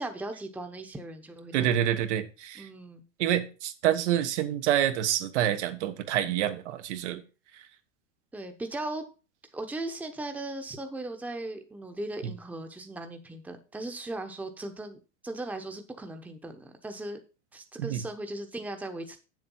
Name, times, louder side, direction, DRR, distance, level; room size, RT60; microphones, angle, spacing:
voice 1, 0.0-1.8 2.5-3.0 8.3-9.1 9.5-15.0 15.2-17.2 17.5-19.2, right 2 dB, 5° right, 5 dB, 1.0 m, -38 dB
voice 2, 1.5-2.7 3.2-7.2 12.2-12.3 17.8-18.0, right 11 dB, 70° right, 8 dB, 1.4 m, -27 dB
7.8 x 7.3 x 5.5 m, 0.33 s
supercardioid pair, 130°, 36 cm